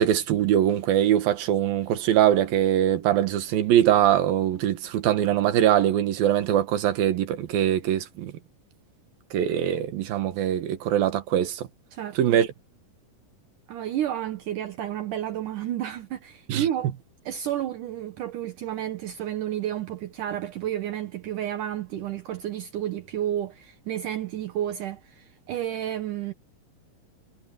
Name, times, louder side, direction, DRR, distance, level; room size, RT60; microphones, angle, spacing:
voice 1, 0.0-8.3 9.3-11.7 12.2-12.5 16.5-16.6, right 11 dB, 90° right, 3.3 m, -22 dB
voice 2, 11.9-12.4 13.7-16.9 17.3-26.3, right 11 dB, 70° right, 2.5 m, -31 dB
omnidirectional pair, 4.1 m